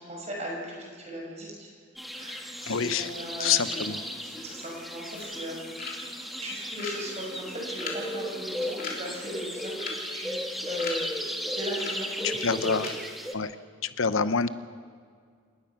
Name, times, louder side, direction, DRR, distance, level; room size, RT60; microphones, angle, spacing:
voice 1, 0.0-1.7 2.1-3.7 4.2-5.6 6.4-9.8 10.1-10.4 10.7-11.0 11.5-12.6, equal, 30° right, -1 dB, 5.7 m, -38 dB
sound 1, 2.0-13.3, equal, ahead, 1.3 m, -35 dB
voice 2, 2.7-3.1 3.4-4.0 12.2-12.9 13.3-13.6 13.8-14.5, left 6 dB, 70° left, 14 dB, 0.8 m, -26 dB
sound 2, 5.1-12.9, left 4 dB, 40° left, 3.5 m, -42 dB
27.5 x 19.5 x 5.9 m, 2.1 s
head